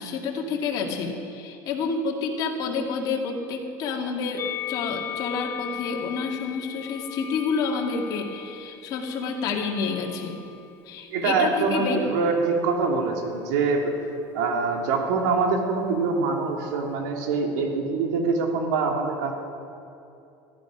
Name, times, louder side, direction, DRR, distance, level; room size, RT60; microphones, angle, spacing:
voice 1, 0.0-10.4 10.9-12.0, left 5 dB, 45° left, 1 dB, 1.9 m, -29 dB
Musical instrument, 4.4-10.8 11.6-12.6, left 10 dB, 25° left, 0.4 m, -38 dB
voice 2, 11.1-13.9 14.3-19.3, right 4 dB, 85° right, 2 dB, 2.3 m, -24 dB
15.0 x 12.0 x 5.9 m, 2.6 s
cardioid pair, 155°, 9 cm